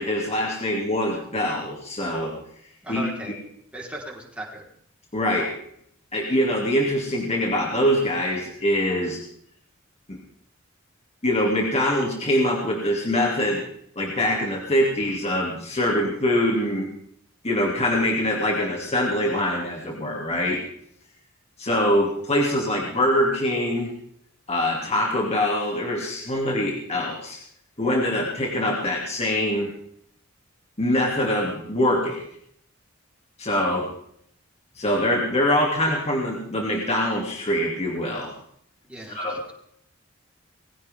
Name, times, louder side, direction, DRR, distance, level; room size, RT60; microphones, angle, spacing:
voice 1, 0.0-2.3 2.9-3.3 5.1-5.5 6.1-9.2 10.1-10.2 11.2-13.6 14.0-16.9 17.4-20.6 21.6-23.9 24.5-27.4 27.8-29.7 30.8-32.2 33.4-33.9 34.8-38.3 39.1-39.3, left 1 dB, 30° left, -1 dB, 2.8 m, -24 dB
voice 2, 2.8-3.3 3.7-4.6 38.8-39.5, right 1 dB, 5° right, -3 dB, 4.4 m, -37 dB
21.0 x 16.5 x 3.7 m, 0.69 s
head